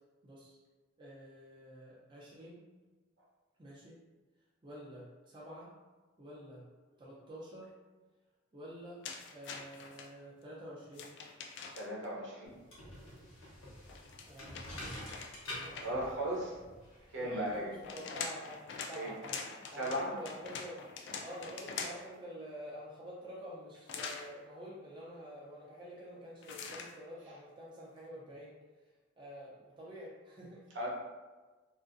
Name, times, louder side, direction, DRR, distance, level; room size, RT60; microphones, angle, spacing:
voice 1, 0.2-0.6 1.0-2.7 3.6-4.0 4.6-5.7 6.2-6.7 7.0-7.7 8.5-9.0 9.3-11.1 13.8-14.0 14.2-16.2 17.0-19.5 19.7-28.6 29.2-30.6, equal, 25° right, -7 dB, 0.4 m, -48 dB
sound 1, 9.0-10.1 10.9-12.1 13.9-16.1 17.5-22.2 23.9-24.3 26.4-26.9, left 5 dB, 60° left, 0.3 m, -44 dB
voice 2, 11.7-12.5 15.7-16.5 17.1-17.7 18.0-18.2 18.9-19.1 19.8-20.1 30.7-30.9, right 1 dB, 65° right, -4 dB, 0.7 m, -36 dB
sound 2, 12.5-17.9, left 1 dB, 80° left, 0.9 m, -48 dB
2.6 x 2.5 x 2.4 m, 1.3 s
head